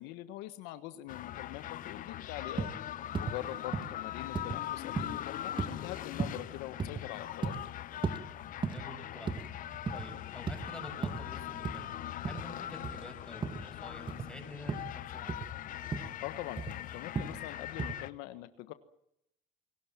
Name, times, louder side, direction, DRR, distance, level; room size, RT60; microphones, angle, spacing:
voice 1, 0.0-2.7 3.2-7.7 12.7-12.9 16.2-18.7, left 15 dB, 85° left, 11 dB, 1.3 m, -43 dB
sound 1, 1.1-18.1, left 12 dB, 55° left, 0.9 m, -41 dB
sound 2, 2.6-2.8 3.1-3.4 3.7-3.9 4.3-4.6 5.0-5.2 5.6-5.8 6.2-6.4 6.8-7.0 7.4-7.6 8.0-8.2 8.6-8.9 9.3-9.5 9.7-10.1 10.5-10.7 11.0-11.2 11.6-11.8 12.2-12.5 12.8-13.0 13.4-13.7 14.1-14.3 14.7-14.9 15.3-15.5 15.9-16.1 16.6-16.8 17.2-17.4 17.8-17.9, right 4 dB, 30° right, 2.1 m, -35 dB
voice 2, 8.7-15.4, left 1 dB, 5° left, 4 dB, 7.2 m, -49 dB
28.0 x 18.5 x 7.4 m, 0.81 s
supercardioid pair, 100°, 17 cm